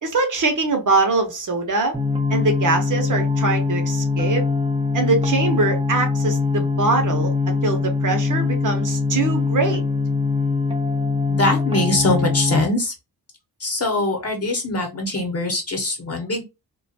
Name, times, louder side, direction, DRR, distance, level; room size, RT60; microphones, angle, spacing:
voice 1, 0.0-2.0 2.3-4.5 4.9-9.8, right 3 dB, 50° right, 0.7 m, -22 dB
sound 1, 1.9-12.6, left 4 dB, 15° right, 0.5 m, -22 dB
voice 2, 11.3-12.9 13.6-16.4, left 2 dB, 40° left, 0.8 m, -22 dB
2.3 x 2.2 x 2.6 m
wide cardioid pair, 150°, 39 cm